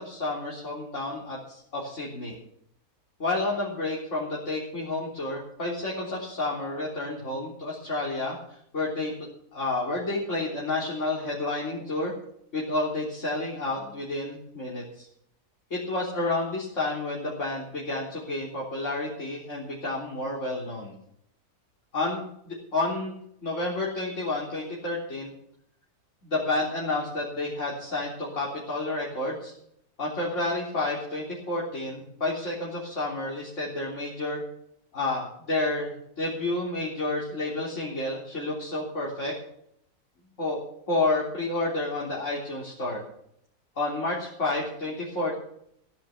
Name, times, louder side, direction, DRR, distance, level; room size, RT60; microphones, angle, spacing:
voice 1, 0.0-2.4 3.2-12.1 12.5-15.1 15.7-21.0 21.9-23.1 23.4-25.3 26.2-29.5 30.0-34.4 34.9-39.3 40.4-40.6 40.9-43.0 43.8-45.4, left 2 dB, 50° left, -5 dB, 3.9 m, -30 dB
16.5 x 10.5 x 5.9 m, 0.70 s
omnidirectional pair, 1.6 m